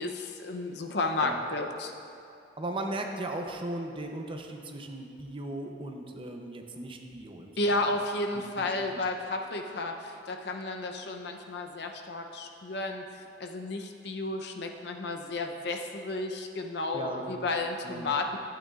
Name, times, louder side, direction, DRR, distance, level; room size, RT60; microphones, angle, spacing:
voice 1, 0.0-1.9 7.6-13.0 13.4-18.4, left 2 dB, 70° left, 4 dB, 0.7 m, -32 dB
voice 2, 2.6-7.6 7.9-8.0 8.6-8.7 16.9-17.3 17.8-18.1, right 1 dB, 30° right, 3 dB, 0.6 m, -37 dB
12.0 x 8.8 x 2.4 m, 2.6 s
head